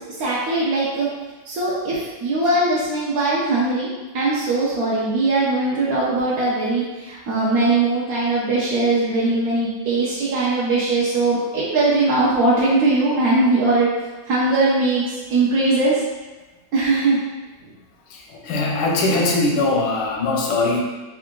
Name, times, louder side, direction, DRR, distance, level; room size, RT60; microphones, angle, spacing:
voice 1, 0.2-1.1 1.5-3.9 4.1-13.9 14.3-15.0 15.3-15.9 16.7-17.2, right 2 dB, 70° right, -7 dB, 0.9 m, -20 dB
voice 2, 18.1-20.8, left 2 dB, 85° left, 0 dB, 1.4 m, -21 dB
3.6 x 2.4 x 3.7 m, 1.2 s
omnidirectional pair, 2.2 m